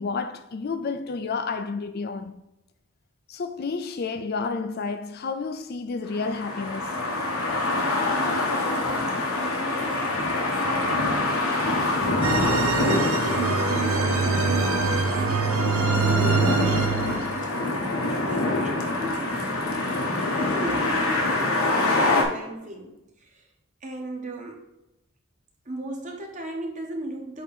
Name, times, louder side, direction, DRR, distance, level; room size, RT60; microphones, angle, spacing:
voice 1, 0.0-2.4 3.3-7.0, left 4 dB, 45° left, 0.4 m, -30 dB
sound 1, 6.1-22.2, left 2 dB, 80° left, 1.1 m, -25 dB
voice 2, 9.2-11.5 11.8-17.5 18.1-20.1 20.4-23.5 23.8-24.7 25.6-27.4, right 1 dB, 35° right, 1.0 m, -37 dB
sound 2, 12.2-17.4, right 5 dB, 85° right, 0.7 m, -25 dB
8.1 x 2.9 x 4.2 m
head